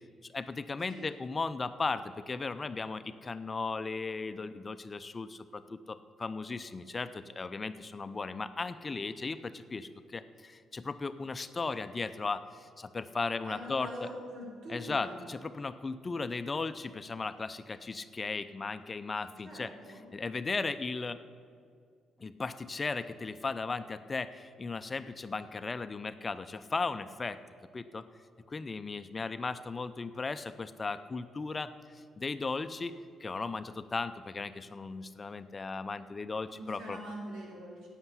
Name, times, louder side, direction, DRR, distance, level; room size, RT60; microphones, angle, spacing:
voice 1, 0.2-14.1 14.7-19.7 20.1-21.2 22.2-27.4 27.7-28.0 28.5-37.0, left 4 dB, 30° left, 11 dB, 0.6 m, -36 dB
voice 2, 13.4-15.2 19.4-20.0 36.5-37.9, equal, 75° right, -3 dB, 4.5 m, -43 dB
12.0 x 8.2 x 9.7 m, 2.2 s
cardioid pair, 90°, 0 cm